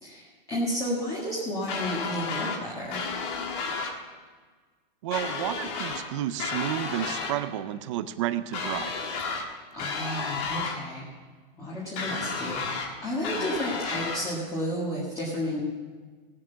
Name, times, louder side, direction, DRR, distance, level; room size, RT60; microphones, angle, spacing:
voice 1, 0.0-3.0 9.7-11.1 11.6-15.6, equal, 15° left, -5 dB, 1.7 m, -32 dB
sound 1, 1.7-2.6 2.9-4.0 5.1-6.1 6.4-7.4 8.5-9.5 9.8-10.8 12.0-12.9 13.2-14.2, left 4 dB, 30° left, 1.4 m, -32 dB
voice 2, 5.0-9.0 13.3-13.5, right 11 dB, 35° right, 10 dB, 0.5 m, -31 dB
17.0 x 7.6 x 7.0 m, 1.5 s
supercardioid pair, 170°, 29 cm